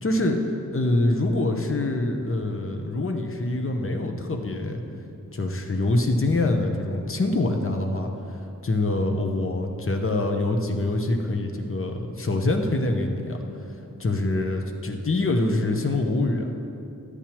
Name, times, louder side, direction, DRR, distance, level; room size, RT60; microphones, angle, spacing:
voice 1, 0.0-0.4 0.7-4.8 5.3-13.4 14.0-16.5, left 2 dB, 40° left, 4 dB, 0.9 m, -25 dB
14.0 x 9.8 x 3.0 m, 2.7 s
wide cardioid pair, 55°, 33 cm